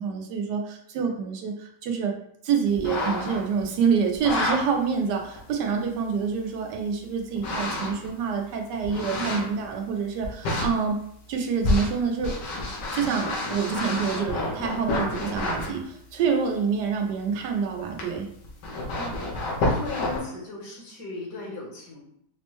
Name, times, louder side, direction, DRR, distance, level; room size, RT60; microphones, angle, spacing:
voice 1, 0.0-2.1 2.4-11.0 11.3-12.4 12.9-18.3, right 6 dB, 80° right, 3 dB, 1.2 m, -27 dB
sound 1, 2.7-3.6 4.1-4.6 5.4-5.5 7.4-8.1 8.8-9.6 10.2-10.7 11.6-15.7 18.0-18.1 18.4-20.2, left 2 dB, 90° left, 1.5 m, -28 dB
voice 2, 18.9-22.0, left 2 dB, 75° left, -2 dB, 1.7 m, -38 dB
5.1 x 2.1 x 3.0 m, 0.71 s
omnidirectional pair, 1.8 m